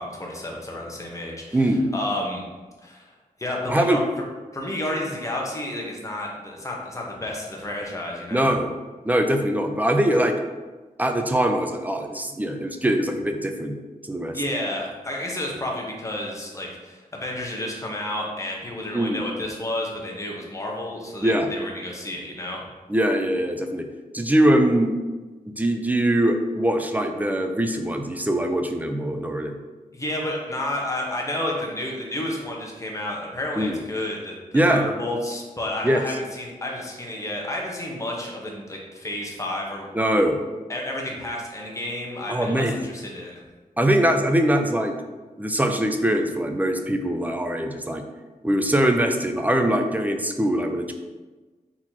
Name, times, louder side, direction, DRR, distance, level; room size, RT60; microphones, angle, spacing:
voice 1, 0.0-2.4 2.8-3.1 3.4-4.0 4.5-8.5 14.3-22.6 29.9-34.3 34.7-40.2 40.7-43.4, left 1 dB, 20° left, -2 dB, 1.0 m, -31 dB
voice 2, 1.5-1.9 3.7-4.0 8.3-8.7 9.0-10.3 11.0-13.8 14.1-14.3 18.9-19.2 21.2-21.5 22.9-23.8 24.1-24.9 25.6-29.5 33.6-33.8 34.5-34.8 35.8-36.0 39.9-40.4 42.3-42.8 43.8-45.0 45.4-48.0 48.4-50.9, right 1 dB, 10° right, 5 dB, 0.5 m, -22 dB
4.1 x 3.0 x 4.1 m, 1.3 s
wide cardioid pair, 95°, 15 cm